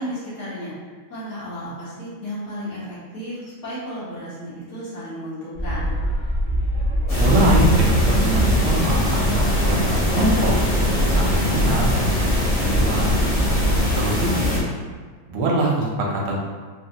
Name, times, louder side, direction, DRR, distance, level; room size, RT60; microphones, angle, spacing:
voice 1, 0.0-5.9 14.3-14.6, equal, 55° left, -10 dB, 1.6 m, -33 dB
sound 1, 5.5-13.8, right 1 dB, 75° left, 0.4 m, -24 dB
sound 2, 7.1-14.6, left 1 dB, 30° left, 0.7 m, -22 dB
voice 2, 7.2-13.2 13.9-14.3 15.3-16.4, right 1 dB, 80° right, -2 dB, 1.5 m, -24 dB
3.8 x 2.4 x 2.8 m, 1.5 s
omnidirectional pair, 2.3 m